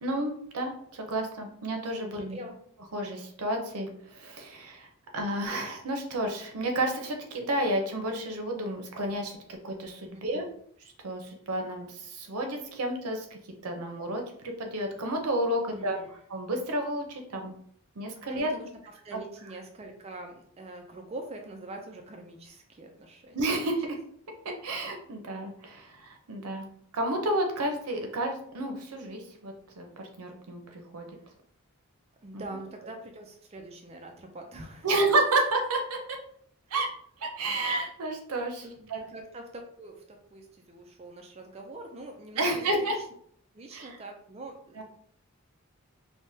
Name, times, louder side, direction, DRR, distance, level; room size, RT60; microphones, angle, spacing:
voice 1, 0.0-2.4 2.9-9.4 9.6-10.5 11.0-14.2 14.6-17.5 18.0-18.5 23.3-24.0 24.4-26.7 26.9-31.1 32.3-32.4 34.8-36.2 36.7-36.9 37.2-38.6 38.9-39.1 42.3-43.0 43.7-44.0 44.8-44.9, right 1 dB, 85° right, 3 dB, 0.6 m, -31 dB
voice 2, 15.7-16.2 18.3-18.7 19.0-23.4 31.3-31.4 32.2-34.9 38.6-42.9 43.5-44.8, right 2 dB, 30° right, 4 dB, 0.3 m, -44 dB
3.4 x 2.1 x 2.7 m, 0.64 s
head